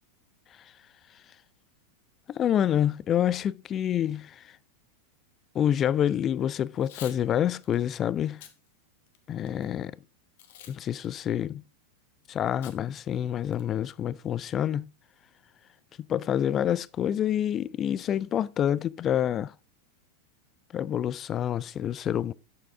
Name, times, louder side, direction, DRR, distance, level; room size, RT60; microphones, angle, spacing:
voice 1, 2.3-4.4 5.5-8.4 9.3-10.0 10.7-11.6 12.3-14.9 16.1-19.5 20.7-22.3, left 10 dB, 30° left, 0.3 m, -27 dB
Packing tape duct tape / Tearing, 6.7-7.2 7.6-7.8 8.3-8.6 9.1-9.6 10.4-10.8 11.0-11.1 12.6-12.8 13.1-13.2 13.5-13.9, left 10 dB, 55° left, 1.1 m, -46 dB
8.4 x 7.0 x 3.4 m
figure-of-eight pair, 90°, 0 cm